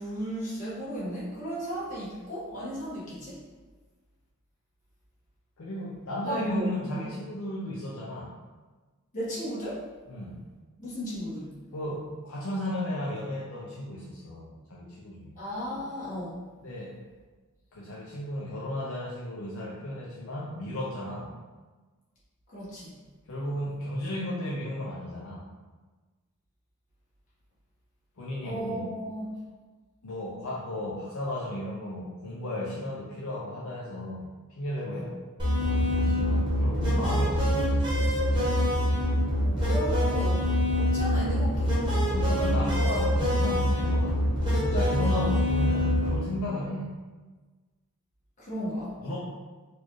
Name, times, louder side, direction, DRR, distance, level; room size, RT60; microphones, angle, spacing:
voice 1, 0.0-3.4 6.2-7.0 9.1-9.8 10.8-11.5 15.3-16.4 22.5-22.9 28.4-29.3 34.9-35.1 39.4-40.5 40.8-41.8 45.1-45.2 48.4-48.9, equal, 35° left, -9 dB, 1.4 m, -35 dB
voice 2, 5.6-8.3 10.1-10.4 11.7-15.4 16.6-17.0 17.7-21.3 23.3-25.4 28.2-28.8 30.0-35.2 35.7-37.9 42.1-46.9 49.0-49.2, left 1 dB, 65° left, -5 dB, 0.6 m, -34 dB
sound 1, 35.4-46.2, equal, 20° right, 1.0 m, -25 dB
4.2 x 2.4 x 3.1 m, 1.3 s
head